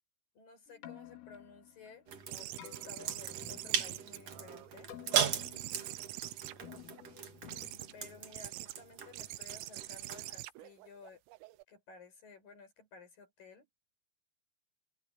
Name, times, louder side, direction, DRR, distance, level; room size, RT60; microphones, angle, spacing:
voice 1, 0.3-4.9 7.9-11.2 11.7-13.7, left 4 dB, 45° left, 8.4 m, -55 dB
Keyboard (musical), 0.7-8.8, left 12 dB, 80° left, 4.3 m, -54 dB
sound 1, 2.1-10.4, right 8 dB, 55° right, 1.8 m, -39 dB
sound 2, 2.3-4.7 5.1-7.0 7.5-7.9 8.3-8.8 9.1-11.6, right 18 dB, 85° right, 3.5 m, -45 dB
open air
omnidirectional pair, 5.8 m